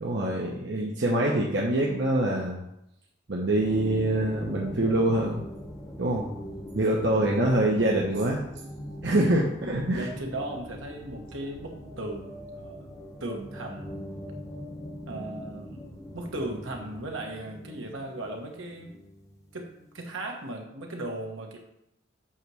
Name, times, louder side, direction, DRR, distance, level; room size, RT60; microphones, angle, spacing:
voice 1, 0.0-2.6 3.3-5.4 6.0-6.3 6.7-8.4 9.0-10.1, right 1 dB, 55° right, -2 dB, 0.9 m, -25 dB
sound 1, 3.6-20.0, equal, 15° left, 0.9 m, -41 dB
voice 2, 7.0-7.6 9.9-12.9 13.2-13.9 15.1-15.9 16.1-19.0 19.5-21.6, right 1 dB, 75° right, 1 dB, 1.3 m, -37 dB
8.7 x 3.1 x 6.2 m, 0.82 s
head